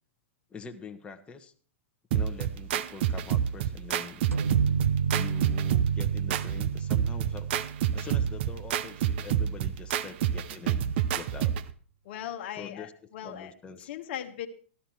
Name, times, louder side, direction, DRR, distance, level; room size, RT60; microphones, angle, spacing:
voice 1, 0.5-1.5 2.1-4.2 5.1-7.5 7.9-11.6 12.5-12.9 13.2-13.9, left 5 dB, 15° left, 4 dB, 1.2 m, -44 dB
sound 1, 2.1-11.7, right 10 dB, 55° right, 0.8 m, -28 dB
sound 2, 4.3-9.8, right 6 dB, 80° right, 1.0 m, -31 dB
voice 2, 12.0-13.5 13.8-14.5, left 11 dB, 55° left, 6 dB, 1.2 m, -38 dB
13.0 x 12.5 x 4.4 m, 0.42 s
hypercardioid pair, 110°, 7 cm